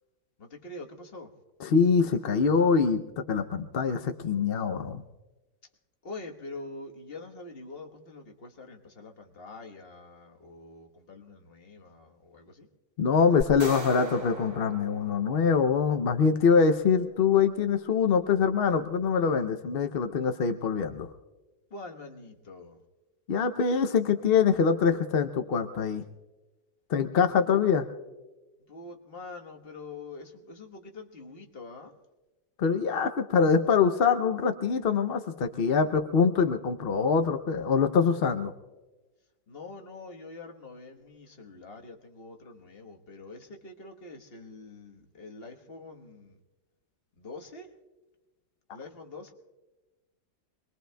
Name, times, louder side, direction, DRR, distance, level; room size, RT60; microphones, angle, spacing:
voice 1, 0.4-1.3 6.0-12.7 21.7-22.8 28.7-31.9 39.5-46.4 47.2-47.7 48.7-49.3, left 3 dB, 35° left, 3 dB, 1.3 m, -45 dB
voice 2, 1.6-3.0 3.3-5.0 13.0-21.1 23.3-26.0 26.9-27.9 32.6-38.5, left 6 dB, 65° left, 7 dB, 0.5 m, -24 dB
sound 1, 13.4-15.8, equal, 60° right, 3.5 m, -38 dB
27.0 x 21.5 x 2.2 m, 1.1 s
omnidirectional pair, 1.8 m